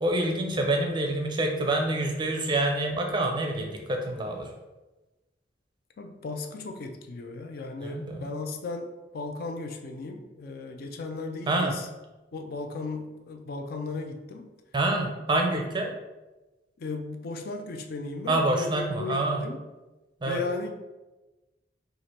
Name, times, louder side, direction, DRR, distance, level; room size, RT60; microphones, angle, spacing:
voice 1, 0.0-4.5 7.8-8.2 11.5-11.7 14.7-15.9 18.3-19.4 20.2-20.4, right 2 dB, 25° right, 2 dB, 0.5 m, -27 dB
voice 2, 6.0-8.9 9.1-11.9 12.3-14.5 15.5-15.6 16.8-19.6 20.3-20.7, left 3 dB, 55° left, 5 dB, 0.4 m, -36 dB
3.1 x 2.4 x 4.2 m, 1.1 s
head